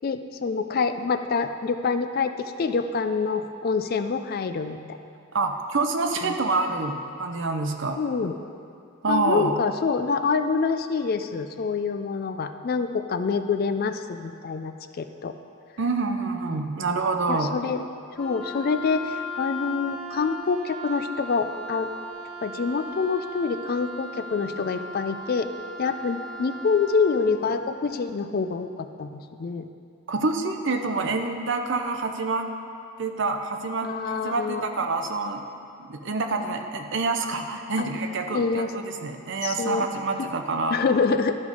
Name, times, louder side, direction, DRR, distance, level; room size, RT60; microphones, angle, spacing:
voice 1, 0.0-5.0 6.2-6.3 8.0-8.3 9.1-15.3 16.8-16.9 17.3-17.9 18.2-21.9 22.4-25.5 25.8-29.7 33.8-34.6 37.8-37.9 38.3-38.7 39.4-39.9 40.7-41.4, left 5 dB, 40° left, 9 dB, 0.3 m, -26 dB
voice 2, 5.3-8.0 9.0-9.5 15.8-17.5 30.1-32.5 33.0-35.4 35.8-38.7 39.0-40.8, right 3 dB, 55° right, 5 dB, 0.6 m, -27 dB
Wind instrument woodwind instrument, 18.1-27.2, left 1 dB, ahead, 0.9 m, -37 dB
12.0 x 5.3 x 4.8 m, 2.4 s
head